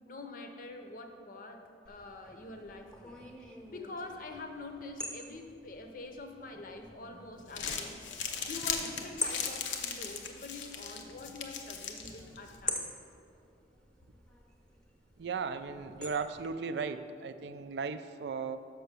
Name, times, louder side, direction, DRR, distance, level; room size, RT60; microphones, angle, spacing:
voice 1, 0.1-3.1 3.7-12.9, left 2 dB, 50° left, 5 dB, 0.7 m, -45 dB
sound 1, 1.9-16.5, left 2 dB, 5° left, 0.7 m, -45 dB
Crumpling crinkling, 7.3-12.6, left 6 dB, 90° left, 0.7 m, -39 dB
voice 2, 15.2-18.6, right 5 dB, 65° right, 11 dB, 0.3 m, -36 dB
6.2 x 5.7 x 6.7 m, 2.5 s
head